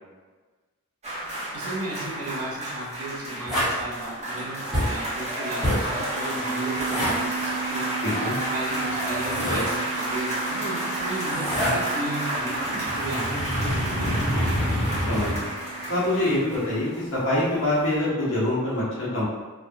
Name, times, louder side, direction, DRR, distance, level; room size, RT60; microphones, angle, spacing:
sound 1, 1.0-17.3 17.6-17.8, right 1 dB, 30° right, 0.9 m, -31 dB
voice 1, 1.5-7.9 8.5-14.7, right 2 dB, 75° right, -3 dB, 0.8 m, -35 dB
sound 2, 3.5-3.8 4.7-5.0 5.6-5.9 6.8-7.2 8.7-9.7 11.0-11.8 12.3-15.4 16.3-16.5, equal, ahead, 1.0 m, -27 dB
sound 3, 6.4-17.9, right 7 dB, 90° left, 0.7 m, -38 dB
voice 2, 8.0-8.3 15.1-15.5 15.9-19.2, left 1 dB, 60° left, -8 dB, 1.0 m, -25 dB
3.1 x 2.3 x 2.7 m, 1.3 s
head